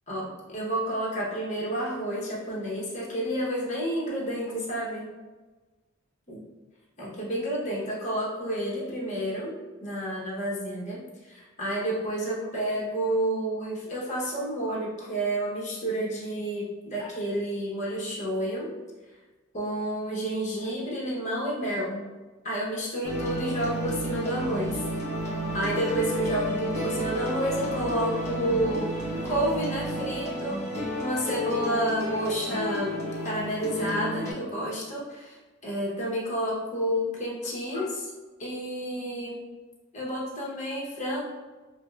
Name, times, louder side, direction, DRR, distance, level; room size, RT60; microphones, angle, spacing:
voice 1, 0.1-5.1 6.3-6.4 7.0-18.7 19.5-22.0 22.4-24.8 25.5-28.9 29.3-30.6 30.9-33.0 33.2-38.1 38.4-39.4 39.9-41.2, right 1 dB, 35° left, -4 dB, 0.8 m, -30 dB
sound 1, 23.0-34.3, equal, 15° left, 1.1 m, -31 dB
5.1 x 2.1 x 2.3 m, 1.2 s
head